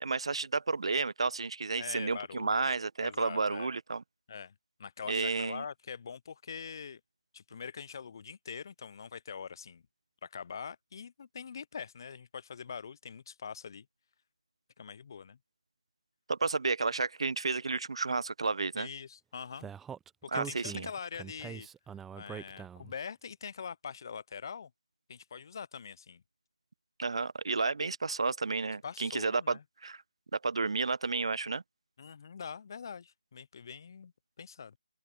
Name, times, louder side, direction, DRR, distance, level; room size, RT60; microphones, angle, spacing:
voice 1, 0.0-4.0 5.1-5.6 16.3-18.9 20.3-20.9 27.0-30.0 30.3-31.6, right 4 dB, 60° right, 0.6 m, -31 dB
voice 2, 1.8-2.8 3.0-3.7 4.3-4.5 4.8-7.0 7.3-9.8 10.2-13.9 14.8-15.4 18.7-19.7 20.2-21.7 22.1-24.7 25.1-26.2 28.8-29.6 32.0-34.1 34.4-34.8, left 6 dB, 40° left, 0.5 m, -43 dB
Speech, 19.6-23.0, right 8 dB, 5° right, 0.6 m, -43 dB
open air
figure-of-eight pair, 155°, 3 cm